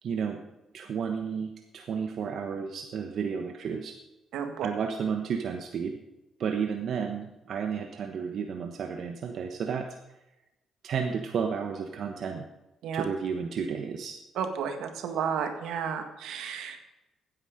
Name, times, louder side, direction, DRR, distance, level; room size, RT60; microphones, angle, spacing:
voice 1, 0.0-0.4 0.7-4.0 4.6-6.0 6.4-9.9 10.8-12.5 12.9-14.2, right 6 dB, 65° right, 4 dB, 1.2 m, -32 dB
voice 2, 4.3-4.7 12.8-13.0 14.3-16.8, right 7 dB, 85° right, 6 dB, 1.7 m, -32 dB
15.5 x 9.9 x 5.1 m, 0.98 s
cardioid pair, 90°, 0 cm